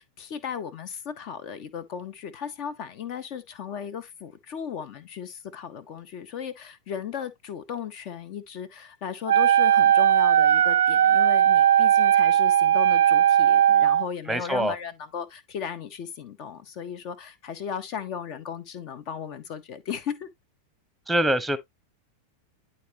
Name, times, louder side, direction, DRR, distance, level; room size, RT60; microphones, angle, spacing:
voice 1, 0.0-20.3, left 7 dB, 45° left, 1.4 m, -36 dB
Wind instrument woodwind instrument, 9.3-14.1, right 10 dB, 65° right, 0.4 m, -18 dB
voice 2, 14.3-14.7 21.1-21.6, right 1 dB, 5° right, 1.2 m, -24 dB
11.0 x 4.1 x 3.0 m
figure-of-eight pair, 90°, 0 cm